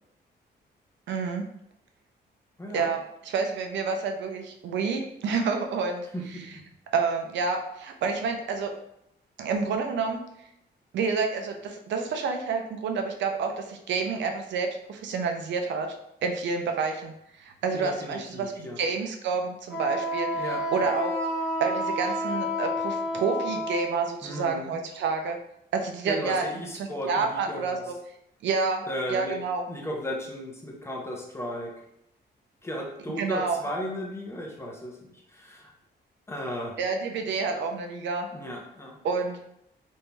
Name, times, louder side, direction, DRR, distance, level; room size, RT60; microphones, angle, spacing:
voice 1, 1.1-1.4 2.7-6.1 6.9-8.7 9.4-10.2 10.9-15.9 16.2-21.2 21.6-25.4 25.7-26.5 26.7-27.9 28.4-28.8 29.1-29.6 33.2-33.6 36.8-38.3 39.0-39.4, right 4 dB, 90° right, 4 dB, 0.4 m, -29 dB
voice 2, 2.6-2.9 6.1-6.6 17.7-18.8 20.3-20.9 24.2-24.8 26.0-27.8 28.9-29.4 29.7-31.7 32.6-35.0 35.3-35.7 36.3-36.8 38.3-39.0, equal, 15° left, -1 dB, 0.5 m, -35 dB
Wind instrument woodwind instrument, 19.7-24.1, equal, 5° right, 0.9 m, -30 dB
3.1 x 2.6 x 2.2 m, 0.77 s
wide cardioid pair, 145°, 18 cm